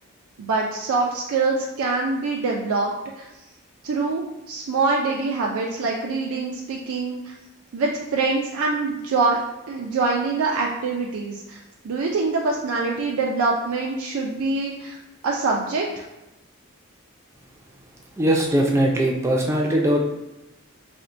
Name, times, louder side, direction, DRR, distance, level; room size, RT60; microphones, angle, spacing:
voice 1, 0.4-2.9 3.2-3.3 3.8-7.3 7.7-9.4 9.7-11.6 11.8-15.0 15.2-16.0, right 3 dB, 75° right, -1 dB, 0.4 m, -24 dB
voice 2, 18.2-20.0, right 1 dB, 15° right, -1 dB, 0.4 m, -20 dB
4.2 x 2.1 x 2.5 m, 0.99 s
head